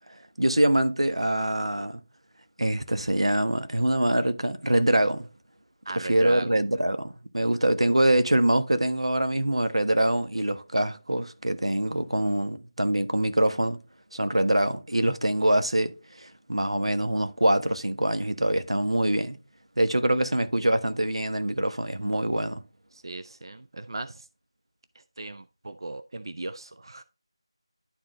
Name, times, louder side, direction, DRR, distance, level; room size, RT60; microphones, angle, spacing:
voice 1, 0.4-2.0 2.6-5.3 5.9-13.8 14.1-15.9 16.2-19.4 19.8-22.6, right 1 dB, 90° right, 1.4 m, -24 dB
voice 2, 5.9-6.5 22.9-24.3 25.2-27.0, right 2 dB, 55° right, 0.5 m, -37 dB
11.5 x 4.1 x 5.0 m
figure-of-eight pair, 170°, 3 cm